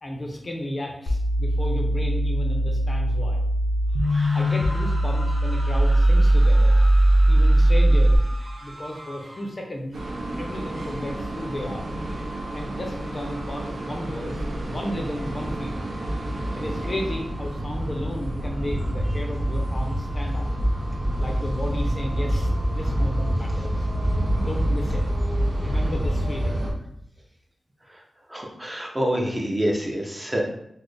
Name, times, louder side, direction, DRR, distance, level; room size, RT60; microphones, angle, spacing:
voice 1, 0.0-3.4 4.3-6.7 7.3-8.2 8.6-9.9 10.4-11.9 12.5-15.9 16.5-20.5 21.2-22.5 22.7-23.9 24.4-25.0 25.6-26.7, left 1 dB, 35° left, 1 dB, 0.5 m, -33 dB
sound 1, 1.1-8.2, right 1 dB, 90° left, 0.5 m, -19 dB
sound 2, 3.9-9.7, equal, 35° right, 1.2 m, -40 dB
sound 3, 9.9-26.7, right 1 dB, 75° right, 0.7 m, -27 dB
voice 2, 28.3-30.4, equal, 15° right, 0 dB, 0.5 m, -26 dB
4.0 x 2.0 x 3.2 m, 0.74 s
wide cardioid pair, 140°, 0 cm